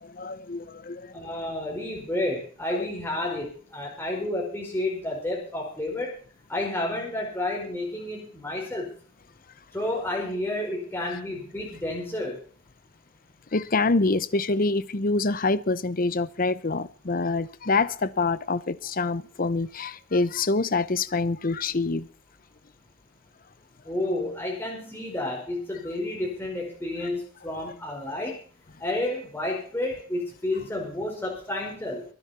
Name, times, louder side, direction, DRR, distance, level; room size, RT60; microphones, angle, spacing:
voice 1, 0.0-1.1 2.7-2.9 13.5-22.1, left 3 dB, 45° left, 0.8 m, -26 dB
voice 2, 1.1-6.1 6.5-8.9 9.7-12.4 23.8-28.4 28.8-32.0, left 1 dB, 10° left, 5.0 m, -30 dB
23.5 x 9.9 x 4.4 m
head